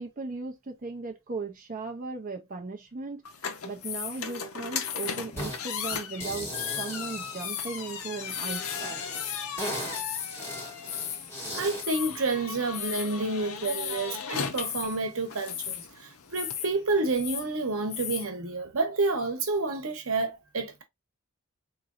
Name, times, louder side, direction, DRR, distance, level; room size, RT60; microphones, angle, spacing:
voice 1, 0.0-3.2 3.6-9.0, right 3 dB, 40° right, 0.6 m, -37 dB
sound 1, 3.2-16.6, left 6 dB, 85° left, 0.7 m, -38 dB
sound 2, 3.8-4.3 4.8-6.0 6.5-6.9 7.4-7.8 8.1-8.6 9.1-9.4 9.9-10.4 10.7-11.3 11.8-12.2 12.7-13.2 13.6-14.1 14.5-15.0 15.5-15.9 16.3-16.7 17.0-17.5 17.9-18.3, left 9 dB, 30° left, 0.4 m, -36 dB
sound 3, 5.4-5.6 5.9-8.0 8.5-11.9, equal, 15° left, 2.8 m, -38 dB
voice 2, 11.5-20.8, right 3 dB, 80° right, 1.0 m, -29 dB
4.0 x 3.0 x 2.4 m
head